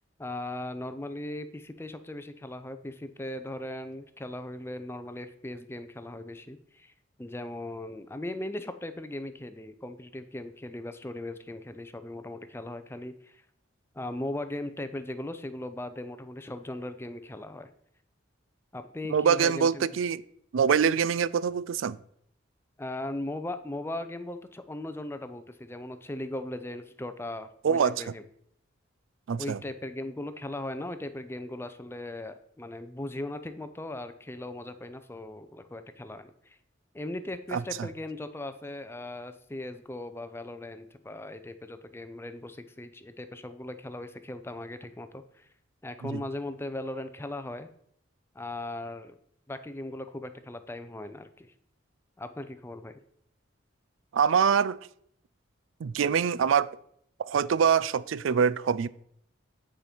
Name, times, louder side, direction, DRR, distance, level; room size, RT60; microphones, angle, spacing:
voice 1, 0.2-6.9 7.2-13.4 13.9-17.7 18.7-19.9 22.8-28.2 29.4-36.6 36.9-45.5 45.8-47.7 48.3-49.2 49.5-51.5 52.2-53.0, left 1 dB, 10° left, 0.5 m, -38 dB
voice 2, 19.1-20.2 20.5-22.0 27.6-28.1 29.3-29.6 37.5-37.9 46.0-46.2 54.1-54.8 55.8-56.7 57.2-58.9, right 7 dB, 85° right, 0.4 m, -24 dB
9.4 x 5.1 x 4.4 m
head